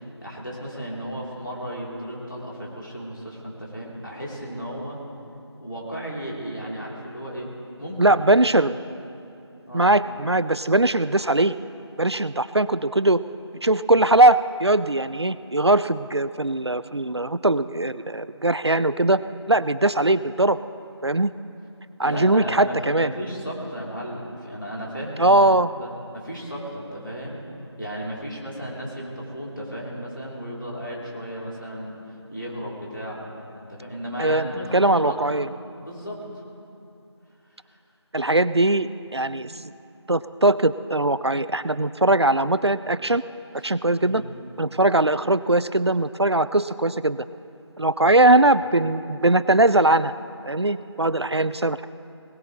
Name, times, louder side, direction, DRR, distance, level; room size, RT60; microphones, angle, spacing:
voice 1, 0.0-5.0 5.6-7.5 7.8-8.2 9.7-9.9 22.0-25.4 25.7-27.4 27.8-33.2 33.6-35.2 35.8-36.2 37.6-37.8 44.0-44.3 48.0-48.5, equal, 45° left, -5 dB, 3.5 m, -34 dB
voice 2, 8.0-8.7 9.7-11.5 12.0-13.2 13.6-19.2 19.5-20.6 21.0-21.3 22.0-23.1 25.2-25.7 34.2-35.5 38.1-39.7 40.1-43.2 43.6-44.2 44.6-47.2 47.8-50.1 50.4-51.9, right 2 dB, 65° right, 15 dB, 0.4 m, -20 dB
19.5 x 19.5 x 3.2 m, 2.7 s
figure-of-eight pair, 180°, 15 cm